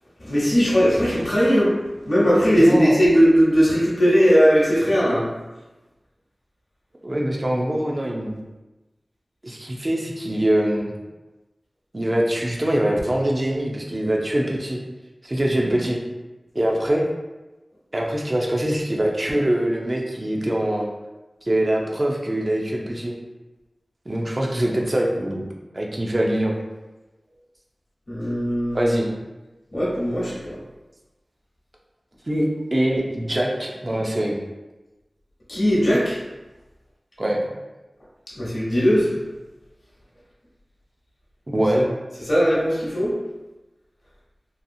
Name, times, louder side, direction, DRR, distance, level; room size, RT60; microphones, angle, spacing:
voice 1, 0.2-1.7 2.1-5.3 28.1-28.9 29.7-30.6 35.5-36.2 38.4-39.1 41.7-41.8 42.3-43.1, equal, 60° left, -7 dB, 0.9 m, -18 dB
voice 2, 2.6-3.0 7.0-8.3 9.4-10.9 11.9-14.8 15.2-16.0 16.5-17.0 17.9-20.9 21.4-23.1 24.1-25.5 25.7-26.5 28.7-29.1 32.3-34.4 37.2-37.4 41.5-41.9, right 1 dB, 45° right, -1 dB, 0.5 m, -23 dB
2.8 x 2.3 x 2.6 m, 1.1 s
wide cardioid pair, 40°, 0 cm